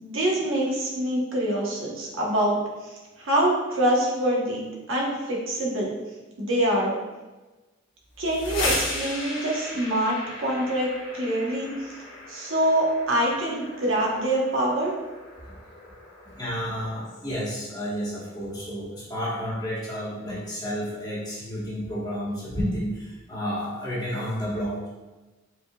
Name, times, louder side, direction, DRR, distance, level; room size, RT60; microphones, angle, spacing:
voice 1, 0.0-6.0 6.4-7.0 8.2-12.0 12.3-14.9, right 1 dB, 85° right, -2 dB, 1.1 m, -25 dB
sound 1, 8.1-17.9, left 1 dB, 80° left, 1.5 m, -36 dB
voice 2, 16.3-24.9, equal, 20° left, -6 dB, 1.3 m, -31 dB
4.7 x 4.1 x 2.3 m, 1.2 s
head